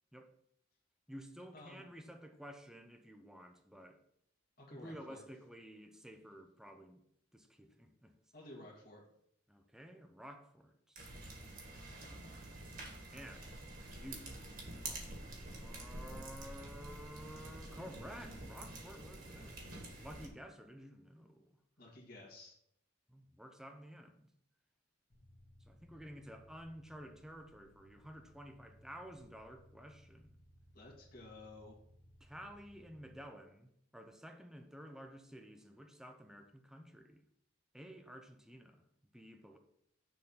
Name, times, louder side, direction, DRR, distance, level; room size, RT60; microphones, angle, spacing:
voice 1, 1.1-4.0 4.7-7.0 7.3-8.1 9.5-11.1 13.1-14.5 14.8-21.6 23.1-24.3 25.6-30.4 32.2-37.2 37.7-38.9 39.1-39.6, equal, 5° right, 0.6 m, -52 dB
voice 2, 4.6-5.2 8.3-9.0 21.8-22.6 30.7-31.8, left 2 dB, 50° left, 1.8 m, -53 dB
sound 1, 11.0-20.3, right 2 dB, 50° right, 1.8 m, -48 dB
sound 2, 25.1-33.2, equal, 35° left, 1.5 m, -63 dB
6.6 x 4.1 x 5.5 m
head